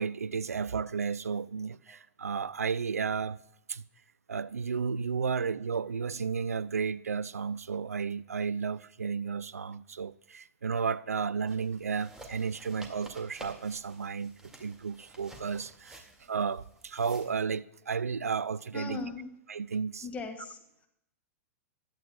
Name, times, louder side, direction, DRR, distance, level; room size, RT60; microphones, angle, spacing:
voice 1, 0.0-3.4 3.7-3.8 4.3-19.0 19.5-20.0, right 5 dB, 80° right, 0.4 m, -33 dB
sound 1, 11.5-17.4, right 2 dB, 5° right, 2.0 m, -51 dB
voice 2, 18.7-19.3 20.0-20.9, left 4 dB, 20° left, 1.8 m, -39 dB
16.0 x 12.0 x 2.3 m
figure-of-eight pair, 105°, 8 cm